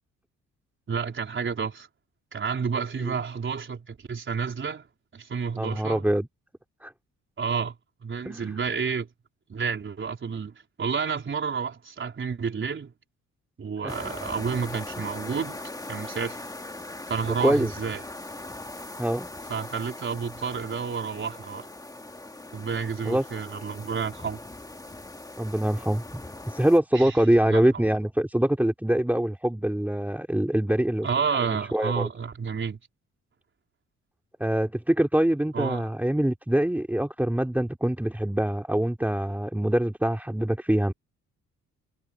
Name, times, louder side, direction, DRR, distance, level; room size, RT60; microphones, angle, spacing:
voice 1, 0.9-1.9 2.3-4.9 5.1-6.0 7.4-7.7 8.0-9.1 9.5-12.9 13.6-15.6 15.9-16.4 17.1-18.0 19.5-21.7 22.5-24.4 26.9-27.1 27.5-27.7 31.0-32.8 35.5-35.9, right 6 dB, 40° right, 4.4 m, -30 dB
voice 2, 5.6-6.3 6.8-6.9 8.2-8.6 13.8-14.1 14.9-15.0 17.4-17.7 19.0-19.3 23.0-23.2 25.4-26.0 26.5-31.1 31.5-32.1 34.4-40.9, right 1 dB, 5° right, 2.9 m, -24 dB
sound 1, 13.9-26.8, left 2 dB, 10° left, 2.0 m, -40 dB
cardioid pair, 90°, 30 cm